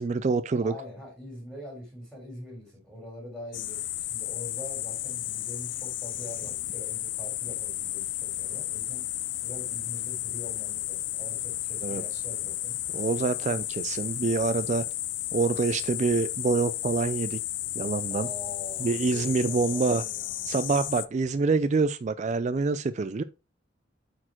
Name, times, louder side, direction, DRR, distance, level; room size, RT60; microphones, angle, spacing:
voice 1, 0.0-0.7 11.8-12.0 12.9-14.9 15.3-17.4 17.7-18.3 18.8-20.0 20.5-23.2, right 4 dB, 35° right, 0.3 m, -26 dB
voice 2, 0.6-9.1 9.4-12.8 18.1-20.6, equal, 5° right, 3.5 m, -44 dB
sound 1, 3.5-21.1, left 15 dB, 75° left, 0.5 m, -33 dB
8.7 x 4.4 x 4.3 m
head